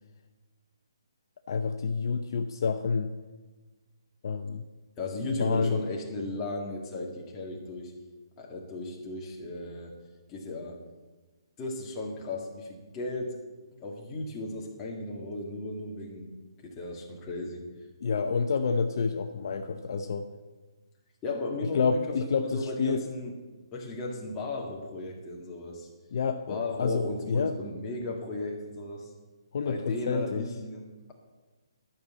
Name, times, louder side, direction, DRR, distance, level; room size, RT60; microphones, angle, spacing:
voice 1, 1.5-3.1 4.2-4.6 5.4-5.8 18.0-20.3 21.7-23.0 26.1-27.5 29.5-30.4, left 5 dB, 50° left, 6 dB, 0.7 m, -28 dB
voice 2, 5.0-7.9 8.4-9.9 10.3-10.8 11.6-13.4 13.8-16.3 16.6-17.6 21.2-22.0 22.4-23.3 23.7-25.9 26.5-29.1 29.6-31.1, left 2 dB, 15° left, -1 dB, 1.9 m, -35 dB
12.0 x 5.6 x 8.4 m, 1.3 s
hypercardioid pair, 165°, 3 cm